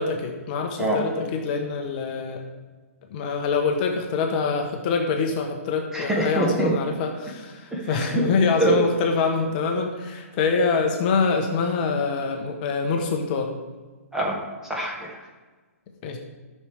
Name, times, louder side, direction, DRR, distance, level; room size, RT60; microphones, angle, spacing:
voice 1, 0.0-2.4 3.1-13.5 16.0-16.2, left 4 dB, 35° left, 2 dB, 1.2 m, -25 dB
voice 2, 5.9-6.8 7.7-8.2 8.6-8.8 14.1-15.2, right 2 dB, 5° right, -2 dB, 1.4 m, -24 dB
12.5 x 6.6 x 3.5 m, 1.3 s
hypercardioid pair, 150°, 8 cm